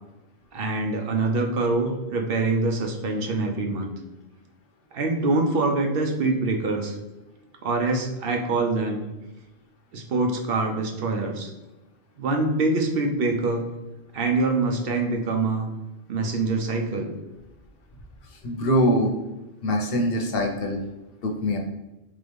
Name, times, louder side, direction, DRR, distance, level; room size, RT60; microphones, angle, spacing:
voice 1, 0.5-3.9 4.9-7.0 7.6-9.0 9.9-11.5 12.2-13.7 14.1-15.7 16.1-17.1, right 3 dB, 65° right, 3 dB, 0.8 m, -25 dB
voice 2, 18.4-19.1 19.6-20.8 21.2-21.6, equal, 65° left, 2 dB, 0.9 m, -23 dB
3.7 x 2.9 x 3.3 m, 1.0 s
omnidirectional pair, 1.1 m